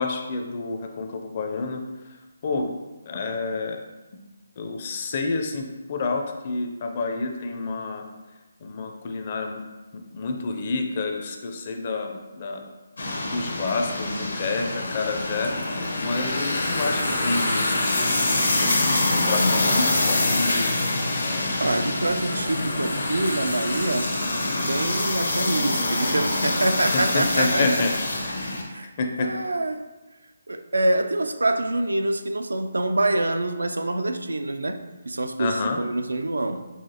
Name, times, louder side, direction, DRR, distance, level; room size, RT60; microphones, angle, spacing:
voice 1, 0.0-2.7 3.1-3.8 4.6-8.1 8.6-9.6 9.9-12.7 13.2-18.3 19.0-20.7 21.2-22.1 26.9-27.9 28.2-28.4 29.0-29.3 35.4-35.8, left 3 dB, 40° left, 4 dB, 0.5 m, -29 dB
sound 1, 13.0-28.6, left 2 dB, 75° left, 0.8 m, -25 dB
voice 2, 21.6-24.1 24.7-27.7 28.7-28.9 29.2-29.8 30.5-34.8 35.1-36.7, right 2 dB, 80° right, 8 dB, 0.3 m, -25 dB
5.6 x 2.5 x 2.8 m, 1.1 s
figure-of-eight pair, 150°, 0 cm